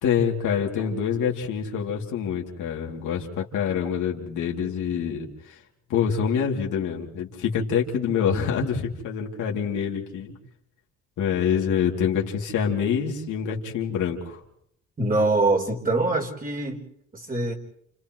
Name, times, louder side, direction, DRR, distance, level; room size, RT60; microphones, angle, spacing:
voice 1, 0.0-5.6 5.9-10.3 11.2-14.4, left 7 dB, 80° left, 0 dB, 2.9 m, -26 dB
voice 2, 15.0-16.8 17.1-17.5, right 2 dB, 30° right, -1 dB, 4.0 m, -24 dB
29.5 x 28.5 x 3.1 m, 0.71 s
cardioid pair, 90°, 30 cm